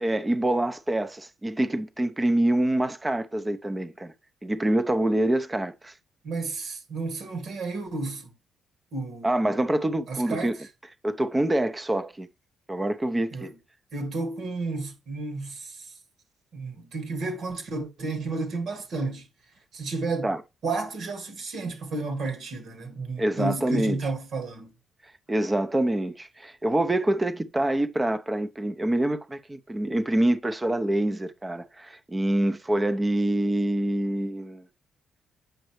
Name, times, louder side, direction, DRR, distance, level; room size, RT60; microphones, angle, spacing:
voice 1, 0.0-4.1 4.4-5.9 9.2-10.5 11.0-12.3 12.7-13.5 20.2-20.4 23.2-24.0 25.3-34.6, right 1 dB, 15° right, 0.7 m, -26 dB
voice 2, 6.2-8.3 8.9-9.6 10.1-10.5 13.3-13.5 13.9-15.9 16.5-19.3 19.7-20.3 20.6-24.7, right 3 dB, 65° right, 2.1 m, -32 dB
7.9 x 5.3 x 3.2 m
cardioid pair, 90°, 0 cm